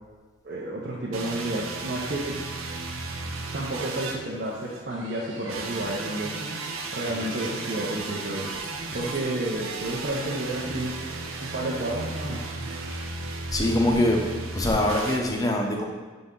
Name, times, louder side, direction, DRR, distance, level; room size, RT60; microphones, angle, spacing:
voice 1, 0.4-2.4 3.5-8.5 8.9-11.0 11.4-12.5, right 1 dB, 50° right, -4 dB, 0.7 m, -31 dB
sound 1, 1.1-4.9 5.5-15.2, right 3 dB, 85° right, 0.6 m, -35 dB
sound 2, 4.9-13.0, right 2 dB, 70° right, 1.1 m, -45 dB
voice 2, 13.5-14.2 14.6-15.9, left 1 dB, 20° left, 1 dB, 0.6 m, -23 dB
6.7 x 3.9 x 3.7 m, 1.4 s
head